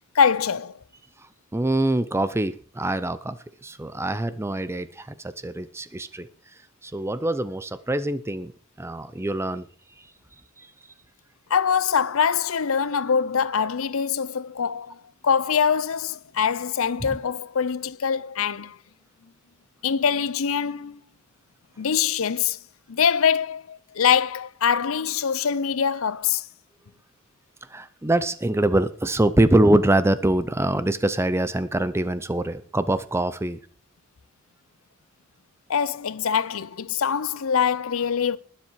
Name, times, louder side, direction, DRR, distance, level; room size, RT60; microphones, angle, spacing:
voice 1, 0.1-0.8 11.5-18.8 19.8-21.0 21.8-22.6 22.9-26.5 35.7-38.4, left 7 dB, 70° left, 0.6 m, -23 dB
voice 2, 1.5-3.4 3.6-6.3 6.8-8.5 8.8-9.7 10.6-10.7 17.0-17.1 27.7-33.6, right 1 dB, 10° right, 0.6 m, -24 dB
20.0 x 7.3 x 4.6 m
head